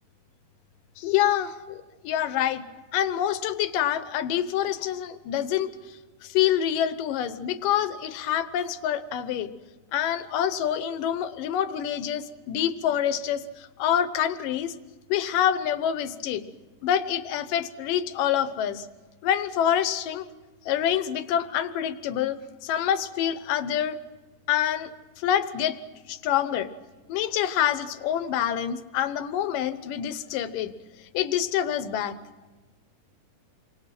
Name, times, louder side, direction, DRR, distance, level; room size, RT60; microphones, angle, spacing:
voice 1, 1.0-2.6 2.9-5.7 6.2-9.5 9.9-14.7 15.1-16.4 16.8-18.9 19.2-20.3 20.7-22.4 22.6-24.0 24.5-24.9 25.2-25.8 26.1-26.7 27.1-30.7 31.1-32.1, left 10 dB, 80° left, 12 dB, 2.6 m, -26 dB
28.5 x 24.5 x 6.0 m, 1.3 s
omnidirectional pair, 3.9 m